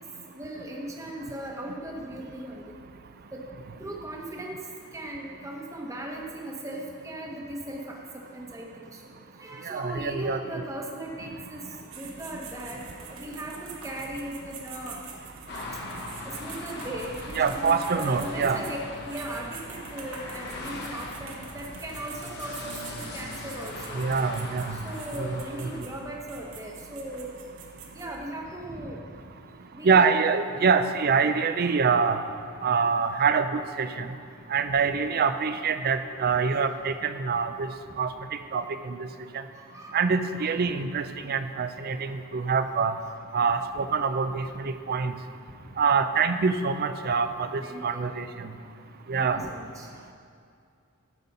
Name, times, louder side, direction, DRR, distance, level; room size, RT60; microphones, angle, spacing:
voice 1, 0.3-2.7 3.3-3.4 3.8-4.6 4.9-9.1 9.4-15.0 16.2-24.0 24.7-27.3 27.9-29.0 29.7-30.1 37.9-38.0 39.6-40.0 40.4-40.5 47.6-48.1 49.1-49.9, right 1 dB, 15° right, -1 dB, 1.0 m, -38 dB
voice 2, 9.6-10.6 17.4-18.6 23.9-24.8 25.2-25.7 29.8-32.2 32.6-34.1 34.5-37.7 38.0-39.1 39.3-39.4 39.9-42.9 43.3-45.1 45.8-48.5 49.1-49.4, right 5 dB, 45° right, 10 dB, 0.4 m, -25 dB
sound 1, 11.9-28.2, right 5 dB, 75° right, 1.3 m, -45 dB
sound 2, 15.5-25.8, left 2 dB, 50° left, 1.2 m, -40 dB
9.4 x 7.3 x 5.3 m, 2.4 s
head